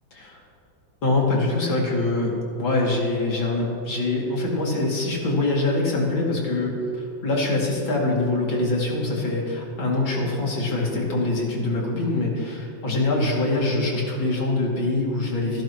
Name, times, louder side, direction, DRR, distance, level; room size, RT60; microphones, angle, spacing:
voice 1, 1.0-15.6, left 2 dB, 75° left, -3 dB, 3.3 m, -24 dB
27.5 x 11.5 x 3.0 m, 2.4 s
omnidirectional pair, 2.1 m